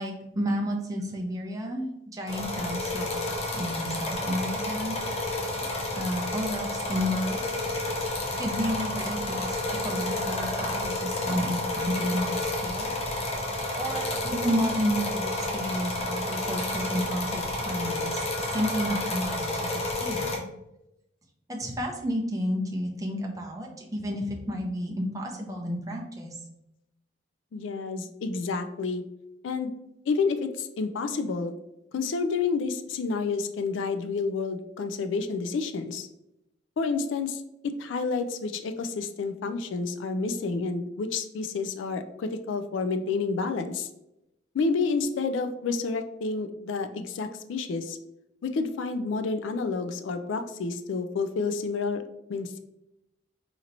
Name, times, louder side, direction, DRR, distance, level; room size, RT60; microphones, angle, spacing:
voice 1, 0.0-3.2 3.5-5.4 6.0-7.4 8.4-9.6 9.8-13.5 13.8-20.4 21.5-26.4, equal, 20° right, 0 dB, 0.5 m, -31 dB
sound 1, 2.3-20.4, left 2 dB, 30° left, 0.6 m, -30 dB
voice 2, 27.5-29.0 29.4-29.7 30.1-31.5 31.9-36.1 36.8-37.4 37.8-43.9 44.5-48.0 48.4-52.0 52.3-52.6, left 4 dB, 80° left, 8 dB, 0.3 m, -29 dB
4.2 x 2.8 x 2.6 m, 0.87 s
head